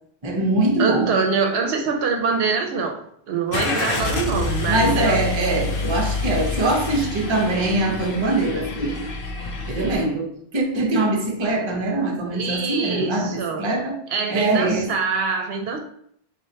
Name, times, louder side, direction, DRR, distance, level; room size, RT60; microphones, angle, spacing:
voice 1, 0.2-1.1 4.7-9.1 9.7-14.0 14.3-14.9, right 2 dB, 30° right, 0.7 m, -23 dB
voice 2, 0.8-3.0 3.3-5.2 12.3-13.7 14.1-15.8, right 5 dB, 75° right, 0.8 m, -24 dB
Car / Engine starting, 3.5-9.9, left 3 dB, 65° left, 0.8 m, -27 dB
4.1 x 3.1 x 2.7 m
omnidirectional pair, 1.1 m